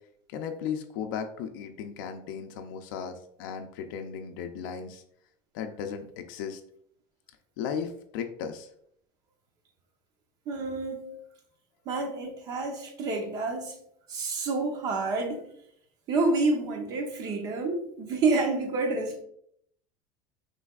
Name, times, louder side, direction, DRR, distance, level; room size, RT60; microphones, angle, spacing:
voice 1, 0.3-5.0 5.5-6.6 7.6-8.7 10.9-11.2, left 7 dB, 85° left, 6 dB, 0.5 m, -36 dB
voice 2, 10.5-11.2 11.9-13.8 14.1-15.5 16.1-19.2, right 3 dB, 35° right, 4 dB, 0.8 m, -28 dB
5.6 x 3.3 x 2.4 m, 0.68 s
cardioid pair, 175°, 11 cm